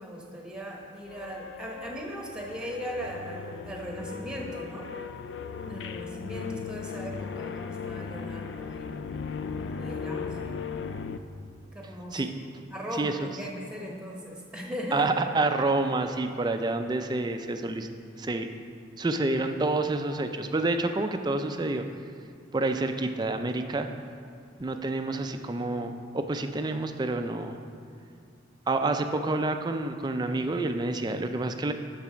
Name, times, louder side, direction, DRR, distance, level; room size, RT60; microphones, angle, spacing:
voice 1, 0.0-4.9 5.7-9.1 9.7-10.6 11.7-12.2 12.7-15.3 21.0-21.7, equal, 5° right, -1 dB, 1.0 m, -38 dB
sound 1, 1.1-11.2, left 5 dB, 65° left, 0.4 m, -37 dB
voice 2, 12.9-13.3 14.9-17.9 18.2-18.5 19.0-21.8 22.5-23.9 24.6-27.6 28.7-31.7, right 2 dB, 20° right, 7 dB, 0.4 m, -28 dB
11.0 x 4.1 x 5.7 m, 2.3 s
head